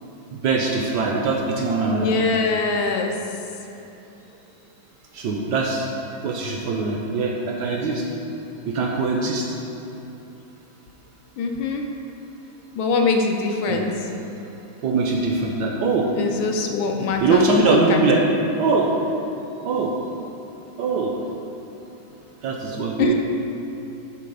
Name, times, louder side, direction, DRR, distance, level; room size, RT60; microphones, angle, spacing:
voice 1, 0.4-2.1 5.1-5.9 6.2-8.0 8.7-9.5 13.7-13.9 14.8-16.1 17.2-18.2 18.6-18.9 19.6-19.9 20.8-21.2 22.4-23.1, right 3 dB, 70° right, 0 dB, 1.0 m, -22 dB
voice 2, 1.9-3.1 11.4-11.8 12.8-13.9 16.2-18.1 23.0-23.1, left 4 dB, 75° left, 3 dB, 1.3 m, -23 dB
7.6 x 3.9 x 5.3 m, 2.9 s
omnidirectional pair, 2.2 m